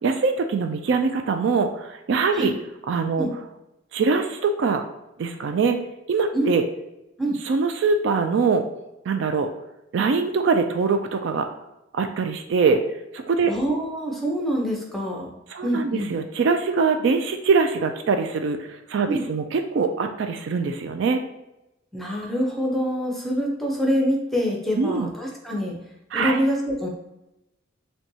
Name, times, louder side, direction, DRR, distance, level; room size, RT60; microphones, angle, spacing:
voice 1, 0.0-2.5 2.9-3.3 3.9-4.8 5.2-5.8 6.1-6.6 7.5-8.6 9.1-9.5 9.9-11.5 11.9-12.8 13.1-13.5 15.5-21.2 24.8-25.1 26.1-26.4, right 4 dB, 65° right, 6 dB, 0.3 m, -23 dB
voice 2, 13.5-15.3 15.6-16.1 19.1-19.3 21.9-25.7 26.1-26.9, equal, ahead, -1 dB, 0.6 m, -25 dB
5.5 x 2.3 x 2.7 m, 0.92 s
head